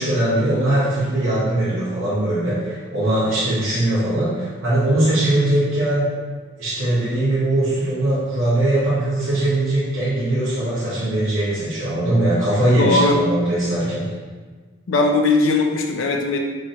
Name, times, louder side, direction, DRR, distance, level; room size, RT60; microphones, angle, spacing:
voice 1, 0.0-6.1 6.6-14.0, right 1 dB, 80° right, -10 dB, 0.9 m, -20 dB
voice 2, 12.8-13.2 14.9-16.4, left 3 dB, 75° left, 3 dB, 0.4 m, -18 dB
3.1 x 2.6 x 4.0 m, 1.4 s
head